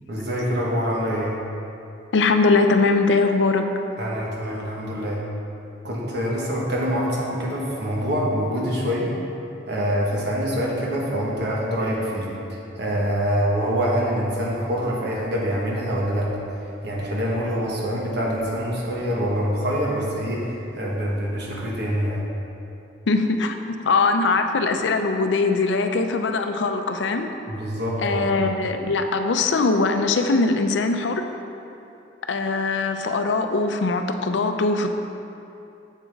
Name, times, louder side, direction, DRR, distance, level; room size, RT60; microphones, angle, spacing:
voice 1, 0.1-1.4 4.0-5.2 5.8-9.1 9.7-16.3 16.8-22.2 27.5-28.3, equal, 60° right, -4 dB, 1.4 m, -25 dB
voice 2, 2.1-3.7 23.1-27.3 28.0-31.2 32.3-34.9, left 3 dB, 70° left, 6 dB, 0.5 m, -21 dB
7.4 x 7.0 x 3.5 m, 2.8 s
head